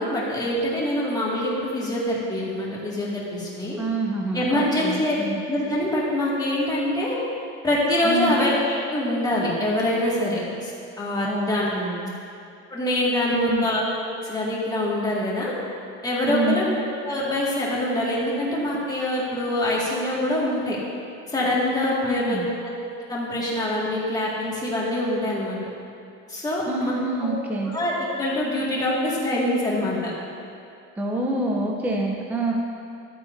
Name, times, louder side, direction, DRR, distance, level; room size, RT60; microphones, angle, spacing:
voice 1, 0.0-3.8 4.3-5.2 5.5-7.2 7.6-10.7 11.0-11.7 12.7-15.5 16.0-16.6 17.0-20.8 21.3-22.7 23.1-25.6 26.3-26.9 27.2-27.5 27.7-30.1, left 1 dB, 10° left, -6 dB, 1.9 m, -24 dB
voice 2, 3.8-5.4 8.0-8.4 11.2-12.1 13.3-13.7 16.3-16.6 22.0-22.5 26.7-27.7 31.0-32.5, right 2 dB, 5° right, -1 dB, 0.6 m, -27 dB
12.5 x 8.5 x 2.6 m, 2.5 s
cardioid pair, 140°, 32 cm